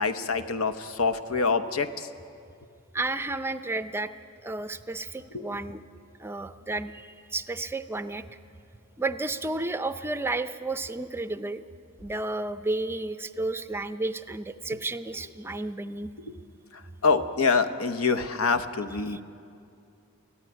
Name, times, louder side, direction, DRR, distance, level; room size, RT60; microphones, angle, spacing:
voice 1, 0.0-2.1 5.3-5.6 16.3-16.4 16.7-19.2, left 4 dB, 75° left, 10 dB, 1.0 m, -26 dB
voice 2, 2.9-4.1 4.4-5.8 6.2-8.4 9.0-11.6 12.0-16.1 19.1-19.2, right 2 dB, 10° right, 11 dB, 0.5 m, -32 dB
21.5 x 14.5 x 10.0 m, 2.5 s
head